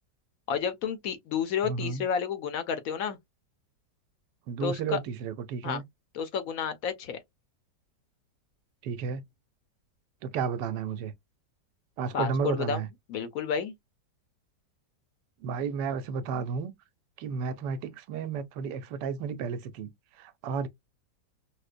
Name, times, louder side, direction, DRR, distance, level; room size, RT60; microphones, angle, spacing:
voice 1, 0.5-3.2 4.6-5.0 5.6-5.8 6.1-7.2 12.1-12.8 13.1-13.7, left 7 dB, 65° left, 0.9 m, -31 dB
voice 2, 1.6-2.0 4.5-5.8 8.8-9.2 10.2-11.1 12.0-12.9 15.4-16.7 17.2-19.9 20.2-20.7, right 6 dB, 80° right, 1.2 m, -32 dB
5.1 x 2.0 x 2.4 m
omnidirectional pair, 1.9 m